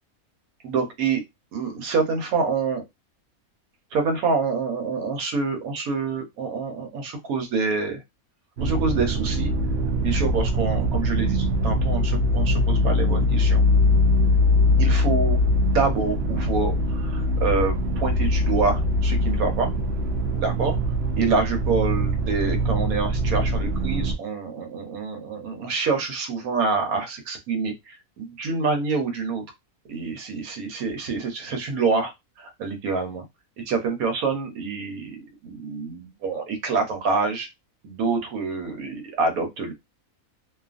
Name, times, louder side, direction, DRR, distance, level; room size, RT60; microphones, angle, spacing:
voice 1, 0.6-1.2 1.5-2.8 3.9-8.0 8.6-9.5 10.0-13.6 14.8-15.4 15.7-19.7 20.3-20.8 21.2-29.4 29.8-32.1 32.4-33.2 33.6-37.5 37.8-39.7, right 4 dB, 80° right, 5 dB, 1.2 m, -26 dB
sound 1, 8.6-24.2, left 1 dB, 65° right, 0.7 m, -22 dB
2.6 x 2.4 x 2.4 m, 0.20 s
omnidirectional pair, 1.5 m